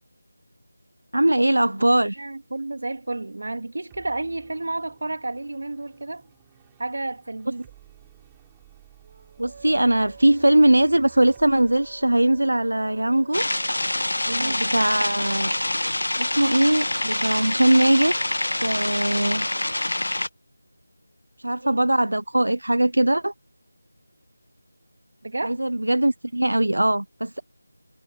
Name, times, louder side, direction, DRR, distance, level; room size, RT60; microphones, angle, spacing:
voice 1, 1.1-2.2 9.4-13.4 14.4-15.5 16.2-18.1 18.6-19.5 21.4-23.3 25.4-27.4, right 1 dB, 90° right, 0.7 m, -20 dB
voice 2, 2.2-6.3 6.8-7.7 14.3-14.7 21.6-21.8 25.2-25.6, right 2 dB, 65° right, 2.9 m, -31 dB
sound 1, 3.9-14.7, right 18 dB, 10° right, 7.7 m, -55 dB
Wind instrument woodwind instrument, 9.0-19.9, right 4 dB, 40° right, 3.0 m, -47 dB
sound 2, 13.3-20.3, left 1 dB, 80° left, 1.7 m, -26 dB
figure-of-eight pair, 170°, 0 cm